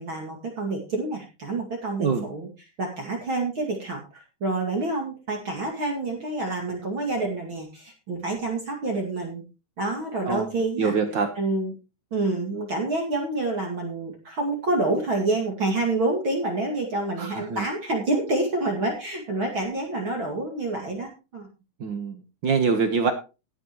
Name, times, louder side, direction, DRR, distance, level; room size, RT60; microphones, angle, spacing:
voice 1, 0.0-2.5 2.8-9.4 9.8-10.9 11.4-11.7 12.1-21.5, right 2 dB, 40° right, 1 dB, 2.8 m, -28 dB
voice 2, 10.8-11.3 17.2-17.7 21.8-23.1, right 5 dB, 85° right, 8 dB, 1.0 m, -24 dB
19.0 x 7.9 x 3.1 m, 0.29 s
omnidirectional pair, 3.7 m